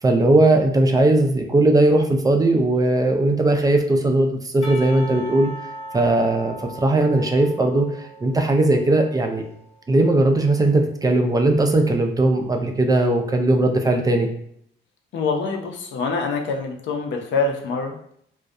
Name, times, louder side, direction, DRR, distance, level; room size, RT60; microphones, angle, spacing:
voice 1, 0.0-5.5 5.9-9.4 9.9-14.3, right 2 dB, 20° right, 3 dB, 0.3 m, -18 dB
Percussion / Church bell, 4.6-9.9, right 1 dB, 30° left, 0.8 m, -38 dB
voice 2, 15.1-18.1, left 4 dB, 70° left, 3 dB, 0.5 m, -25 dB
2.3 x 2.1 x 2.6 m, 0.68 s
cardioid pair, 90°, 20 cm